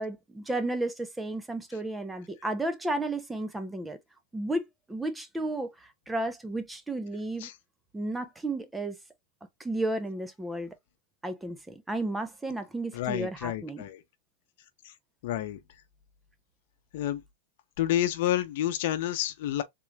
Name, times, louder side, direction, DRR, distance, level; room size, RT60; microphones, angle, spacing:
voice 1, 0.0-4.0 4.3-7.5 7.9-9.0 9.6-10.7 11.2-13.8, right 2 dB, 5° right, 0.5 m, -33 dB
voice 2, 12.9-14.0 15.2-15.6 16.9-17.2 17.8-19.6, left 12 dB, 60° left, 0.7 m, -29 dB
3.7 x 2.2 x 3.2 m
supercardioid pair, 160°, 0 cm